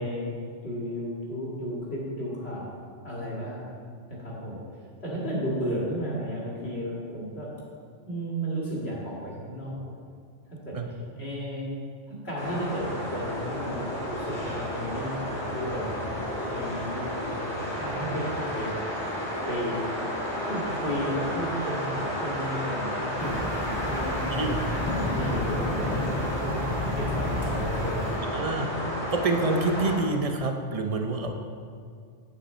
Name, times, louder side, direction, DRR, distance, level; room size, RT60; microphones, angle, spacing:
voice 1, 0.0-2.7 3.0-3.7 4.1-4.6 5.0-7.5 8.1-9.9 10.5-10.8 11.2-11.7 12.1-18.7 19.5-19.8 20.5-24.3 24.7-26.6 27.0-28.4, equal, 60° left, -5 dB, 2.2 m, -33 dB
sound 1, 12.4-30.0, equal, 20° left, 2.1 m, -32 dB
sound 2, 23.2-28.2, left 1 dB, 10° right, 2.5 m, -32 dB
voice 2, 28.3-28.7 29.1-31.3, right 2 dB, 40° right, 4 dB, 0.6 m, -27 dB
8.2 x 7.2 x 4.3 m, 2.2 s
omnidirectional pair, 1.2 m